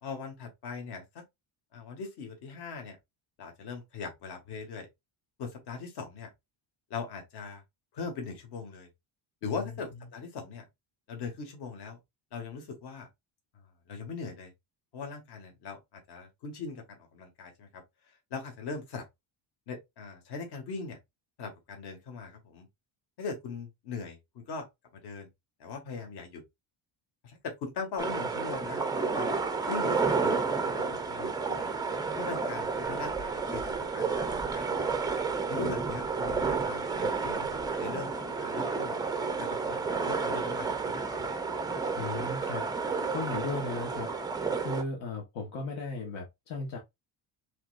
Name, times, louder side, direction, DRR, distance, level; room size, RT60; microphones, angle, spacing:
voice 1, 0.0-1.2 1.7-3.0 3.4-4.9 5.4-6.3 6.9-7.6 7.9-8.9 9.4-10.6 11.1-12.0 12.3-13.1 13.9-14.5 14.9-17.8 18.3-19.0 19.7-21.0 21.4-22.7 23.2-24.7 24.9-25.3 25.6-26.4 27.2-29.3 29.7-31.6 32.2-34.7 35.5-38.1 38.4-39.0 39.4-41.0, left 4 dB, 55° left, 1.9 m, -40 dB
voice 2, 9.4-9.7 42.0-42.6 43.1-44.1 44.6-46.8, left 3 dB, 70° left, 1.5 m, -36 dB
sound 1, 28.0-44.8, right 4 dB, 10° right, 0.4 m, -31 dB
5.7 x 3.3 x 2.4 m
cardioid pair, 180°, 47 cm